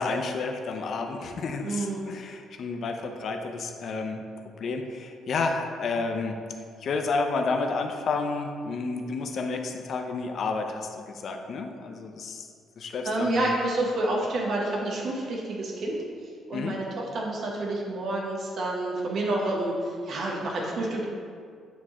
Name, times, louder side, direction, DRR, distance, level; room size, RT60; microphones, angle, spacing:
voice 1, 0.0-4.2 4.6-6.4 6.8-12.5 12.8-13.5 16.5-16.8, left 4 dB, 50° left, 4 dB, 0.5 m, -30 dB
voice 2, 1.6-2.0 13.0-16.0 16.5-16.9 17.1-21.1, right 2 dB, 50° right, -2 dB, 0.9 m, -28 dB
8.8 x 3.1 x 3.6 m, 2.2 s
cardioid pair, 155°, 0 cm